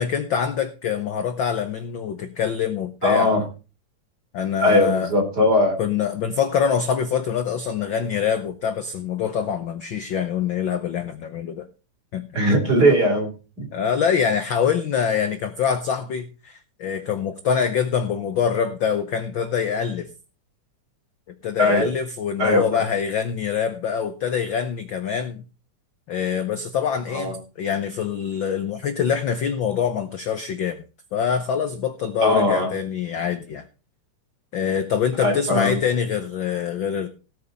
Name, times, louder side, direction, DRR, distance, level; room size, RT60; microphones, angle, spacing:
voice 1, 0.0-3.3 4.3-5.1 5.8-11.7 12.1-12.2 13.7-20.1 21.4-25.4 26.1-30.8 31.1-33.6 34.5-37.1, left 7 dB, 70° left, 9 dB, 1.1 m, -25 dB
voice 2, 3.0-3.4 4.6-5.8 12.3-13.3 13.6-13.7 21.6-21.9 22.4-22.8 27.1-27.3 32.2-32.7 35.2-35.8, left 1 dB, 30° right, 3 dB, 3.9 m, -19 dB
18.0 x 7.5 x 4.1 m, 0.33 s
omnidirectional pair, 3.5 m